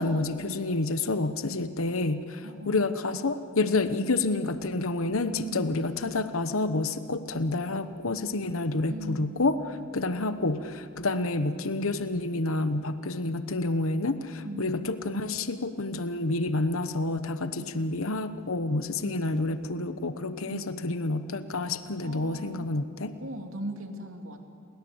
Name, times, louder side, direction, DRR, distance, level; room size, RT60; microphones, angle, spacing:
voice 1, 0.0-9.6 9.9-23.1, left 2 dB, 75° left, 11 dB, 1.1 m, -29 dB
voice 2, 2.4-3.0 5.4-5.9 8.9-9.4 11.1-11.3 14.4-14.9 17.6-18.0 19.0-19.5 20.4-20.8 22.0-22.7 23.2-24.5, right 1 dB, 70° right, 5 dB, 2.6 m, -40 dB
30.0 x 22.5 x 8.0 m, 2.4 s
head